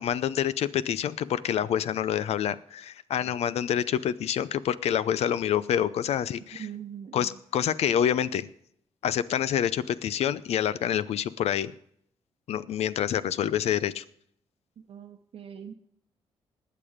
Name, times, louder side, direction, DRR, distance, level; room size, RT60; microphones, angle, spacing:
voice 1, 0.0-6.7 7.1-8.5 9.0-11.7 12.5-14.0, left 9 dB, 75° left, 16 dB, 0.6 m, -27 dB
voice 2, 6.6-7.4 14.8-15.7, right 8 dB, 60° right, 2 dB, 0.9 m, -42 dB
20.0 x 6.9 x 5.1 m, 0.69 s
cardioid pair, 75°, 11 cm